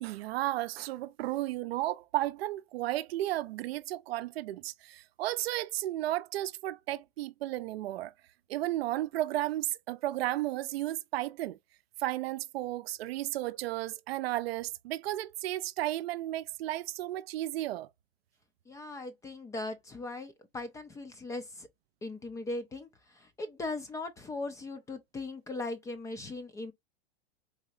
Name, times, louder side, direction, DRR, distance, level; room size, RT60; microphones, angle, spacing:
voice 1, 0.0-8.1 8.5-11.6 12.0-17.9, right 15 dB, 75° right, 0.5 m, -33 dB
voice 2, 18.7-21.7 22.0-26.7, left 2 dB, 10° left, 0.3 m, -39 dB
4.1 x 2.7 x 2.4 m
hypercardioid pair, 125°, 31 cm